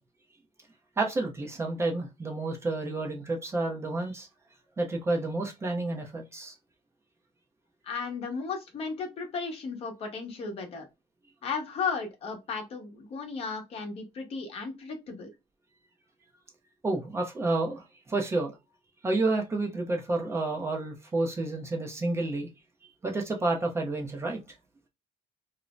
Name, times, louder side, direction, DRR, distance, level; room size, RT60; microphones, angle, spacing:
voice 1, 1.0-4.3 4.8-6.5 16.8-18.5 19.0-22.5 23.0-24.4, right 2 dB, 20° right, 0.5 m, -30 dB
voice 2, 7.8-10.9 11.4-15.3, left 5 dB, 45° left, 0.9 m, -35 dB
2.6 x 2.0 x 3.1 m
cardioid pair, 135°, 14 cm